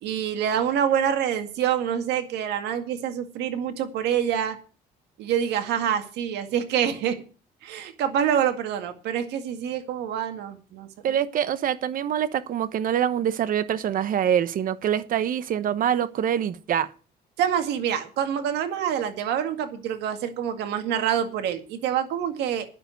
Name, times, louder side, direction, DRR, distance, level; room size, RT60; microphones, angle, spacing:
voice 1, 0.0-4.6 5.2-7.2 7.6-11.2 17.4-22.7, right 9 dB, 80° right, 2.0 m, -26 dB
voice 2, 11.0-16.9, right 9 dB, 55° right, 1.0 m, -25 dB
9.8 x 7.0 x 8.9 m
cardioid pair, 110°, 17 cm